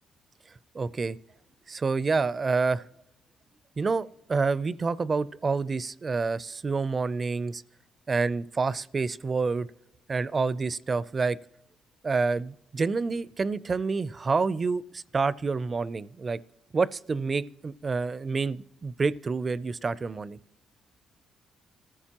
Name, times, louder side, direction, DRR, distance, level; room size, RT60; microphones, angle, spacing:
voice 1, 0.7-1.2 1.7-2.8 3.8-7.6 8.1-9.7 10.1-11.4 12.0-16.4 16.7-20.4, right 4 dB, 35° right, 0.4 m, -28 dB
29.0 x 14.5 x 2.9 m
cardioid pair, 90°, 0 cm